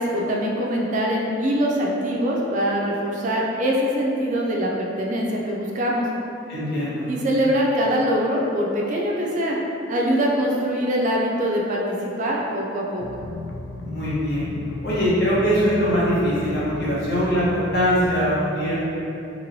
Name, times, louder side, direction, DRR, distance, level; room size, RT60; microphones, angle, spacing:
voice 1, 0.0-6.0 7.1-9.6 9.9-13.0, equal, 40° right, -2 dB, 0.3 m, -23 dB
voice 2, 6.5-7.1 13.8-14.5 14.8-18.8, equal, 55° left, -9 dB, 0.9 m, -22 dB
sound 1, 13.0-18.3, left 3 dB, 80° left, 0.3 m, -34 dB
3.0 x 2.9 x 2.6 m, 2.8 s
head